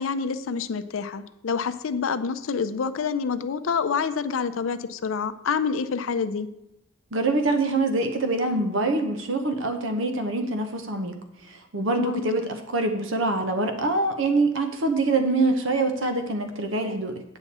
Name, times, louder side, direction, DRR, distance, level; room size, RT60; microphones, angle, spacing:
voice 1, 0.0-6.5 12.0-12.2, left 5 dB, 80° left, 11 dB, 0.5 m, -27 dB
voice 2, 7.1-11.2 11.5-17.2, right 2 dB, 70° right, 6 dB, 0.8 m, -25 dB
9.0 x 6.7 x 4.2 m, 0.85 s
head